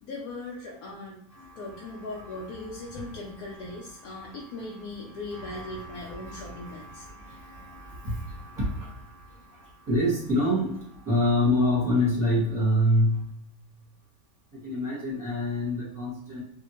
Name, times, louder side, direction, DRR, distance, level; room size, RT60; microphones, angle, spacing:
voice 1, 0.0-1.2 1.6-7.0, left 2 dB, 80° left, -3 dB, 1.1 m, -39 dB
voice 2, 1.3-13.3 14.6-16.4, left 1 dB, 15° right, -6 dB, 1.0 m, -28 dB
2.7 x 2.3 x 3.0 m, 0.70 s
omnidirectional pair, 1.6 m